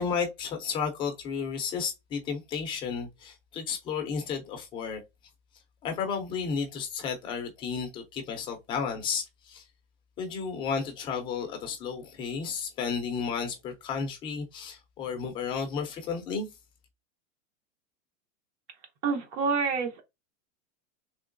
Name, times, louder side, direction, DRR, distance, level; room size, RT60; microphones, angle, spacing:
voice 1, 0.0-5.0 5.8-9.6 10.2-16.5, left 6 dB, 15° left, 0.3 m, -33 dB
voice 2, 19.0-20.0, right 5 dB, 60° right, 1.0 m, -27 dB
3.6 x 3.1 x 2.5 m
supercardioid pair, 155°, 39 cm